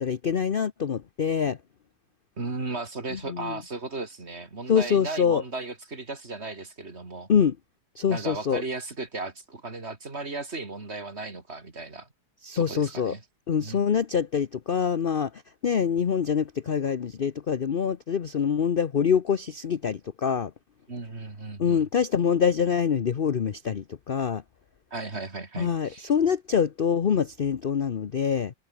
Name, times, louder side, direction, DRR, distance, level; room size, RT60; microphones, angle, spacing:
voice 1, 0.0-1.6 3.1-3.6 4.7-5.4 7.3-7.6 8.0-8.6 12.4-13.1 13.5-20.5 21.6-24.4 25.6-28.5, left 7 dB, 50° left, 0.6 m, -25 dB
voice 2, 2.4-7.3 8.1-12.1 12.6-13.2 13.6-13.8 20.9-21.8 24.9-26.1, right 3 dB, 35° right, 3.3 m, -36 dB
omnidirectional pair, 2.0 m